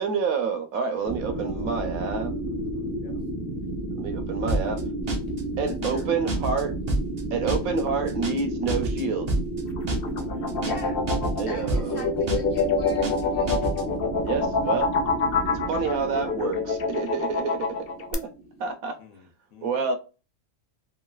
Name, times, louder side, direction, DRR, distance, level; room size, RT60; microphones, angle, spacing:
voice 1, 0.0-2.3 4.0-4.8 5.6-6.7 7.3-9.3 11.4-12.1 14.2-14.9 15.7-17.8 18.1-18.3 18.6-19.0 19.6-20.0, right 5 dB, 75° right, 1.0 m, -28 dB
voice 2, 0.9-3.2 5.6-6.1 10.2-10.6 19.0-20.0, left 4 dB, 75° left, 1.1 m, -48 dB
sound 1, 1.0-18.7, right 1 dB, 10° right, 0.6 m, -32 dB
sound 2, 4.5-4.8 5.1-5.4 5.7-6.0 6.3-6.6 6.9-7.2 7.5-7.8 8.1-8.4 8.7-9.0 9.3-9.6 9.9-10.2 10.5-10.8 11.1-11.4 11.7-12.0 12.3-12.6 12.9-13.2 13.5-13.8, right 2 dB, 55° right, 0.4 m, -28 dB
sound 3, 9.7-18.1, left 5 dB, 90° left, 0.5 m, -26 dB
voice 3, 10.6-11.0 11.4-13.9, left 3 dB, 55° left, 0.9 m, -42 dB
3.1 x 2.3 x 2.2 m
omnidirectional pair, 1.5 m